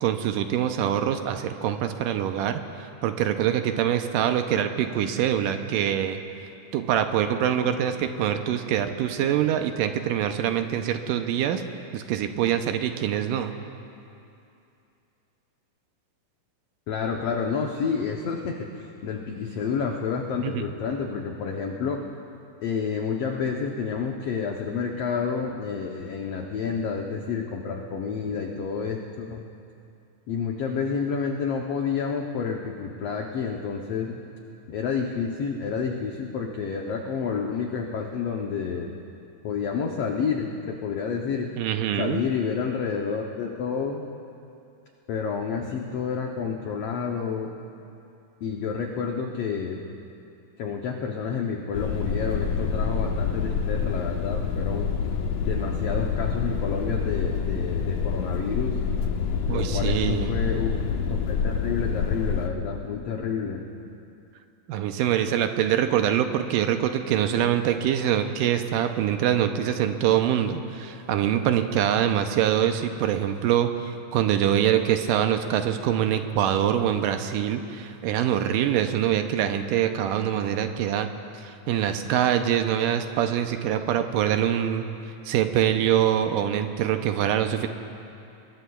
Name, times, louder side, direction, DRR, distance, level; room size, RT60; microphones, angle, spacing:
voice 1, 0.0-6.2 6.7-11.6 11.9-13.5 20.4-20.6 41.6-42.2 59.5-60.4 64.7-81.1 81.4-84.9 85.3-87.7, right 10 dB, 80° right, 7 dB, 2.2 m, -24 dB
voice 2, 16.9-22.0 22.6-29.4 30.3-34.2 34.7-38.9 39.4-41.5 42.0-44.1 45.1-47.5 48.4-49.9 50.6-54.9 55.4-58.8 59.5-63.9, left 6 dB, 90° left, 1 dB, 1.3 m, -29 dB
sound 1, 51.7-62.5, left 6 dB, 70° left, 2.1 m, -27 dB
24.0 x 21.5 x 2.3 m, 2.6 s
omnidirectional pair, 3.9 m